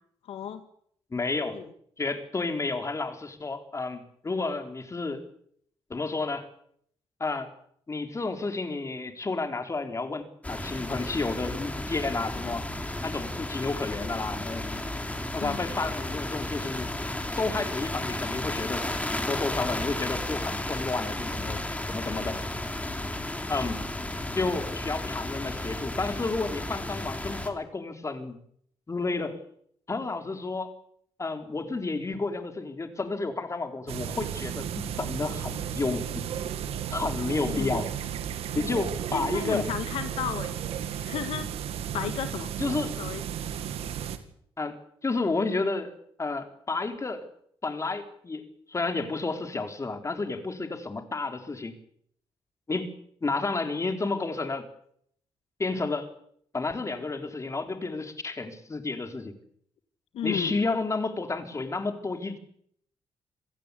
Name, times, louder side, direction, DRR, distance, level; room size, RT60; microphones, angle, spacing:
voice 1, 0.3-0.6 1.5-1.7 15.4-15.6 22.3-22.4 37.5-37.8 39.1-40.6 41.0-41.5 41.9-42.5 43.0-43.2 60.1-60.5, left 9 dB, 85° left, 9 dB, 1.8 m, -33 dB
voice 2, 1.1-1.6 2.0-5.2 5.9-6.5 7.2-7.5 7.9-12.7 13.0-14.8 15.3-16.9 17.4-18.9 19.3-21.6 21.9-22.5 23.5-23.8 24.3-28.4 28.9-29.4 29.9-30.7 31.2-36.2 36.9-37.9 38.5-39.7 42.6-42.9 44.6-45.9 46.2-47.2 47.6-51.7 52.7-52.9 53.2-54.6 55.6-56.1 56.5-59.3 60.2-62.4, left 3 dB, 30° left, 6 dB, 4.0 m, -31 dB
sound 1, 10.4-27.5, left 1 dB, 15° left, 3.5 m, -33 dB
sound 2, 33.9-44.2, right 9 dB, 90° right, 2.2 m, -34 dB
26.5 x 16.0 x 8.4 m, 0.67 s
cardioid pair, 80°, 10 cm